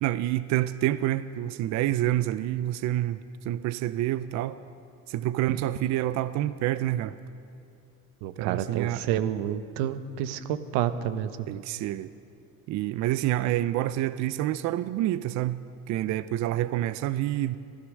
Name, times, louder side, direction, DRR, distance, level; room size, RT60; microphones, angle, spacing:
voice 1, 0.0-3.2 3.4-4.6 5.1-7.1 8.4-9.0 11.5-12.1 12.7-17.6, right 14 dB, 50° right, 14 dB, 0.4 m, -28 dB
voice 2, 8.2-11.3, right 10 dB, 85° right, 11 dB, 0.9 m, -29 dB
14.5 x 13.5 x 6.4 m, 2.5 s
cardioid pair, 135°, 38 cm